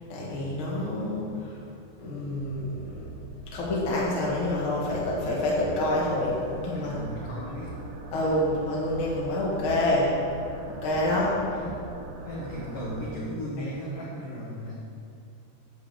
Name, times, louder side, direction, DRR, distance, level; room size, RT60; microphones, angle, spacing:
voice 1, 0.1-1.5 2.0-3.1 3.5-6.9 8.1-10.3 10.8-11.4, left 1 dB, 50° left, -5 dB, 1.5 m, -27 dB
sound 1, 2.4-13.1, right 1 dB, 75° right, 3.0 m, -42 dB
voice 2, 6.7-7.7 11.5-11.7 12.2-14.7, equal, 75° left, -6 dB, 1.9 m, -35 dB
9.6 x 5.4 x 7.8 m, 2.4 s
omnidirectional pair, 5.8 m